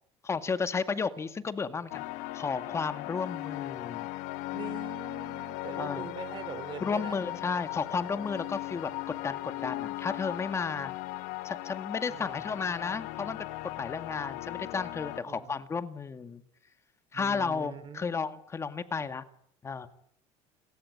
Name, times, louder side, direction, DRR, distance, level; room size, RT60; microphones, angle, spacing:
voice 1, 0.2-2.1 2.3-4.1 5.8-6.1 6.8-10.9 11.4-13.4 13.8-16.4 17.1-19.2 19.6-19.9, left 5 dB, 20° left, 10 dB, 2.0 m, -33 dB
sound 1, 1.9-15.2, left 19 dB, 75° left, 1.3 m, -38 dB
voice 2, 4.5-7.2 12.1-12.4 15.2-15.5 17.1-18.1, right 8 dB, 35° right, 13 dB, 3.1 m, -43 dB
30.0 x 23.5 x 8.2 m, 0.67 s
cardioid pair, 145°, 13 cm